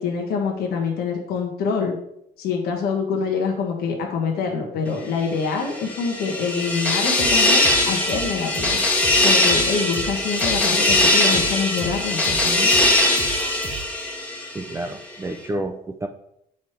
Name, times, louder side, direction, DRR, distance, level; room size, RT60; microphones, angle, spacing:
voice 1, 0.0-2.0 2.4-8.8 9.2-12.7, left 5 dB, 70° left, 0 dB, 1.2 m, -25 dB
sound 1, 5.6-14.7, left 1 dB, 10° left, 1.5 m, -20 dB
sound 2, 7.2-13.8, right 4 dB, 35° right, 0.9 m, -36 dB
voice 2, 14.5-16.1, right 2 dB, 15° right, 6 dB, 0.4 m, -30 dB
7.2 x 3.3 x 4.4 m, 0.77 s
cardioid pair, 110°, 17 cm